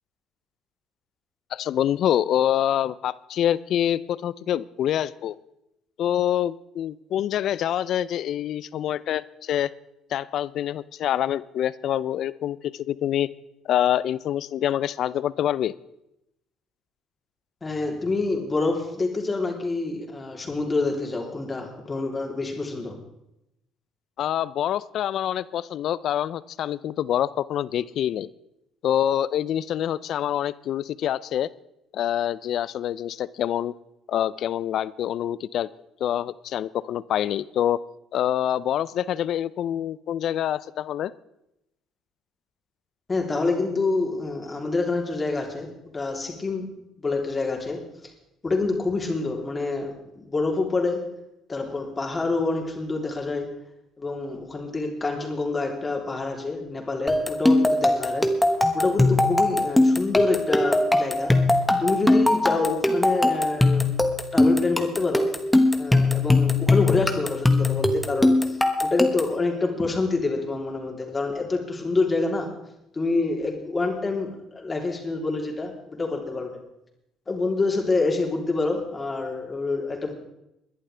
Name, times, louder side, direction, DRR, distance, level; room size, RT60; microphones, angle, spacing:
voice 1, 1.5-5.4 6.0-9.7 10.1-13.3 13.7-15.7 24.2-28.3 28.8-31.5 31.9-33.7 34.1-35.7 36.0-37.8 38.1-41.1, left 11 dB, 65° left, 19 dB, 0.4 m, -26 dB
voice 2, 17.6-23.0 43.1-45.7 45.9-46.7 47.0-47.8 48.4-51.0 51.5-53.5 54.0-58.3 58.7-61.4 61.8-63.9 64.3-65.3 65.8-72.5 72.9-76.6 77.3-80.1, left 3 dB, 25° left, 1 dB, 3.2 m, -27 dB
sound 1, 57.1-69.4, left 2 dB, 5° left, 1.4 m, -21 dB
20.5 x 11.0 x 3.4 m, 0.86 s
supercardioid pair, 80°, 0 cm